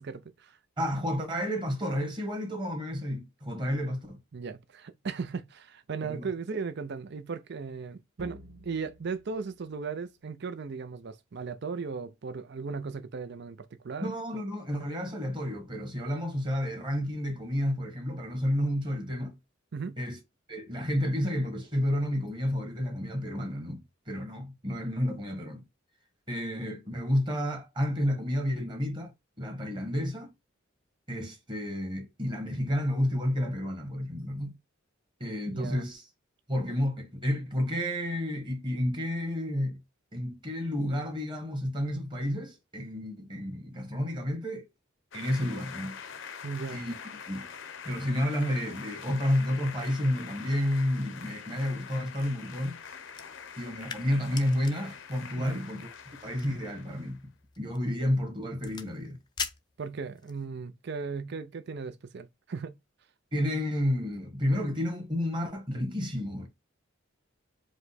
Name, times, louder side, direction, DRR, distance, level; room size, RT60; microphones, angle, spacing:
voice 1, 0.0-0.6 4.3-14.1 19.7-20.0 35.5-35.8 46.4-46.8 55.4-55.6 59.8-62.8, right 5 dB, 55° right, 0.5 m, -37 dB
voice 2, 0.8-4.2 6.0-6.3 14.0-19.4 20.0-20.2 20.5-25.6 26.3-29.1 29.4-30.3 31.1-34.5 35.2-36.0 36.5-39.8 40.1-44.6 45.1-46.0 46.7-46.9 47.3-47.5 47.8-52.8 53.6-55.9 56.2-57.2 57.6-59.2 63.3-66.5, equal, 25° right, 1.4 m, -31 dB
sound 1, 8.2-10.8, equal, 80° right, 1.4 m, -52 dB
sound 2, 45.1-57.2, left 6 dB, 65° left, 0.7 m, -44 dB
sound 3, 53.1-60.5, left 6 dB, 20° left, 0.5 m, -44 dB
4.9 x 2.2 x 4.1 m
head